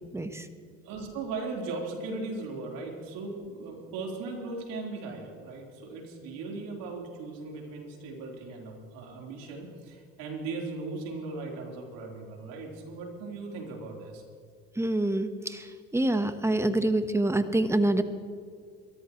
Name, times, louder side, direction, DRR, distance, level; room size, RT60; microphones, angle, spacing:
voice 1, 0.1-0.5 14.8-15.7 15.9-18.0, right 1 dB, 10° right, 10 dB, 1.2 m, -26 dB
voice 2, 0.8-14.2, right 3 dB, 75° right, -1 dB, 4.1 m, -38 dB
23.5 x 14.0 x 3.2 m, 2.2 s
supercardioid pair, 80°, 34 cm